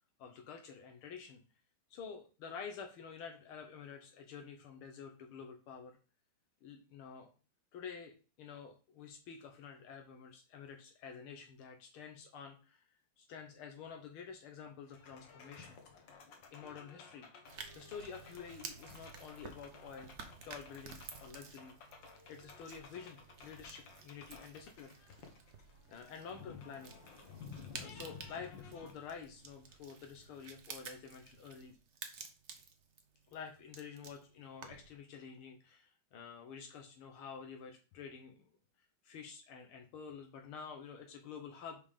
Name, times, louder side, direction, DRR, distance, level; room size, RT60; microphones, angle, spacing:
voice 1, 0.2-1.4 1.9-6.0 6.6-7.3 7.7-12.8 13.2-15.8 16.5-17.3 17.7-20.2 20.5-21.8 22.3-24.9 25.9-27.0 27.7-31.8 33.3-38.5 38.8-41.8, left 6 dB, 75° left, 3 dB, 1.7 m, -49 dB
sound 1, 14.8-28.9, left 5 dB, 60° left, 1.8 m, -55 dB
sound 2, 17.4-35.0, right 5 dB, 55° right, 0.8 m, -53 dB
5.3 x 5.2 x 4.9 m, 0.36 s
omnidirectional pair, 2.4 m